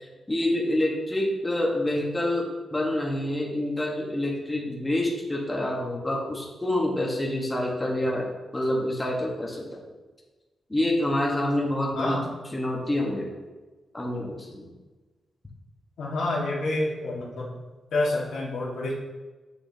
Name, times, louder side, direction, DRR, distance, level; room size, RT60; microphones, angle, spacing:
voice 1, 0.0-8.3 8.5-9.8 10.7-12.2 12.5-13.3 13.9-14.6, left 1 dB, 15° left, -2 dB, 1.2 m, -27 dB
voice 2, 11.9-12.3 16.0-17.5 17.9-18.9, left 2 dB, 85° left, -4 dB, 1.7 m, -28 dB
8.0 x 6.8 x 2.8 m, 1.2 s
cardioid pair, 105°, 0 cm